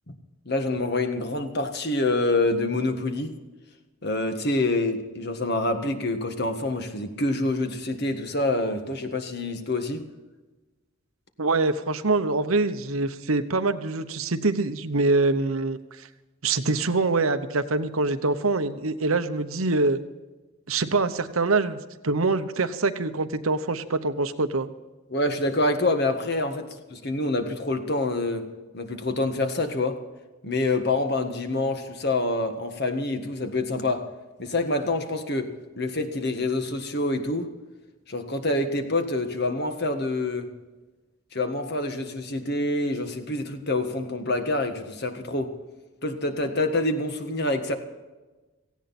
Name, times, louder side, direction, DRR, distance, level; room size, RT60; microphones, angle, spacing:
voice 1, 0.4-3.4 4.0-10.0 25.1-28.5 28.7-30.0 30.4-34.1 34.4-37.5 38.1-40.5 41.3-45.5 46.0-47.7, left 2 dB, 50° left, 6 dB, 1.7 m, -26 dB
voice 2, 11.4-15.8 16.4-20.0 20.7-21.8 22.0-24.7, right 3 dB, 80° right, 10 dB, 1.0 m, -24 dB
17.5 x 16.0 x 4.3 m, 1.2 s
head